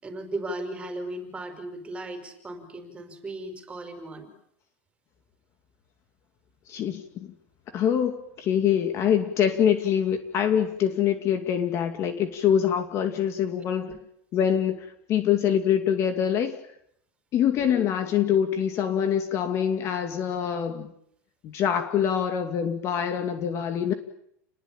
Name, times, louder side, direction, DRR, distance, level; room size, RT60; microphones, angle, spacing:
voice 1, 0.0-4.3 13.9-14.0 17.5-17.9, right 1 dB, 15° right, 7 dB, 5.5 m, -36 dB
voice 2, 6.7-7.3 7.7-13.9 14.3-16.6 17.3-20.9 21.4-23.9, left 9 dB, 35° left, 7 dB, 2.4 m, -25 dB
30.0 x 20.5 x 9.0 m, 0.73 s
supercardioid pair, 155°, 8 cm